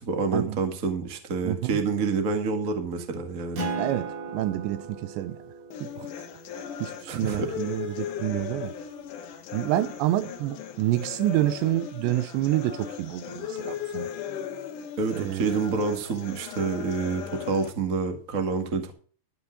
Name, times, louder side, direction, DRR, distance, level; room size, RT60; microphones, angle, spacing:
voice 1, 0.0-3.7 7.1-7.6 15.0-18.9, right 4 dB, 65° right, 0.8 m, -28 dB
voice 2, 1.5-1.8 3.8-5.4 5.8-6.1 6.8-8.7 9.5-14.1 15.2-15.5, right 14 dB, 80° right, 2.9 m, -28 dB
Acoustic guitar, 3.5-8.5, right 3 dB, 45° right, 3.1 m, -38 dB
sound 1, 5.7-17.7, left 9 dB, 70° left, 2.0 m, -38 dB
14.0 x 6.2 x 6.3 m
omnidirectional pair, 5.3 m